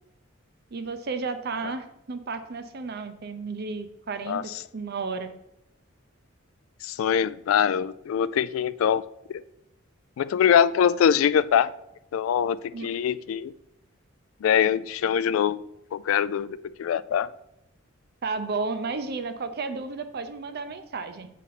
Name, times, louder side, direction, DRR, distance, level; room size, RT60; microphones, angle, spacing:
voice 1, 0.7-5.3 12.7-12.9 18.2-21.3, right 4 dB, 55° right, 0.6 m, -33 dB
voice 2, 6.8-9.0 9.3-9.4 10.2-11.7 12.1-13.5 14.4-15.6 15.9-17.3, left 8 dB, 90° left, 0.3 m, -23 dB
7.4 x 4.1 x 4.1 m
head